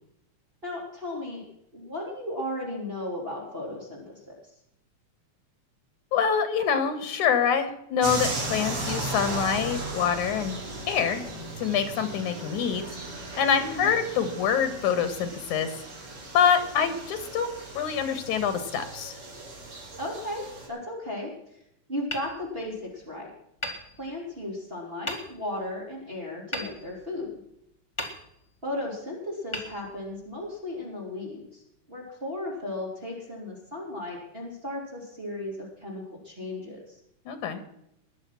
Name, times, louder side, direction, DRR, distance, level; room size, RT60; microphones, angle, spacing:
voice 1, 0.6-1.4 1.7-4.3 13.6-13.9 20.0-21.3 21.9-23.3 24.0-27.3 28.6-31.6 31.9-36.8, left 1 dB, 20° right, -3 dB, 3.6 m, -35 dB
voice 2, 6.1-10.6 10.9-11.2 11.6-12.9 13.4-15.7 16.3-17.5 17.7-19.1 37.3-37.6, left 7 dB, 80° left, 10 dB, 3.1 m, -25 dB
sound 1, 8.0-20.7, right 2 dB, 60° right, 4.8 m, -36 dB
Hammer, 22.1-23.1 23.6-24.5 25.1-25.7 26.5-27.5 27.9-28.7 29.5-30.5, left 1 dB, 10° left, 2.0 m, -38 dB
21.0 x 7.1 x 6.0 m, 0.78 s
omnidirectional pair, 3.4 m